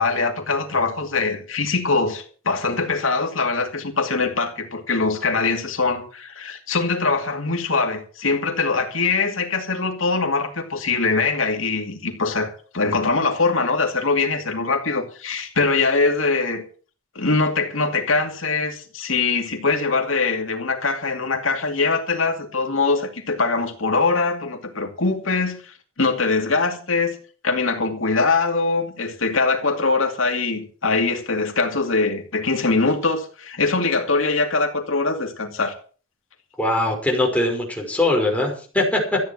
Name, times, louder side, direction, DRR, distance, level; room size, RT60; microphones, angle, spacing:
voice 1, 0.0-16.6 17.1-27.2 27.4-35.7, left 3 dB, 80° left, 2.4 m, -22 dB
voice 2, 36.6-39.2, left 1 dB, 5° left, 5.6 m, -21 dB
14.0 x 9.3 x 7.4 m
head